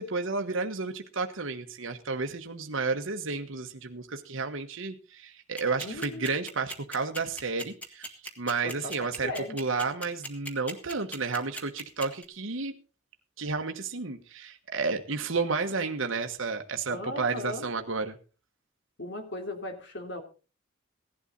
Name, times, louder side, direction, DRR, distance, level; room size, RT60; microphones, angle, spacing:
voice 1, 0.0-12.7 13.4-18.2, right 4 dB, 65° right, 4 dB, 1.2 m, -32 dB
sound 1, 5.6-12.2, equal, 5° left, 1.8 m, -38 dB
voice 2, 5.8-6.3 8.6-9.6 16.9-17.7 19.0-20.2, left 1 dB, 55° left, 5 dB, 3.1 m, -37 dB
17.0 x 11.5 x 4.0 m, 0.34 s
head